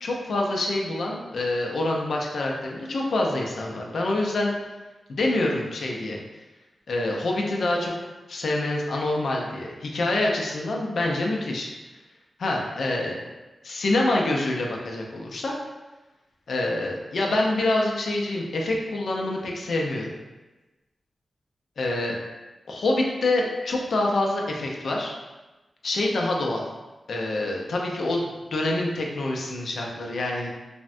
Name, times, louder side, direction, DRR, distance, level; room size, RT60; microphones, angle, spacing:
voice 1, 0.0-4.5 5.1-6.2 6.9-7.9 8.3-11.7 12.4-13.2 13.6-15.5 16.5-20.1 21.8-22.2 22.7-25.2 25.8-26.6 27.1-30.5, left 2 dB, 80° left, -1 dB, 0.5 m, -26 dB
3.4 x 2.1 x 2.5 m, 1.1 s
cardioid pair, 55°, 0 cm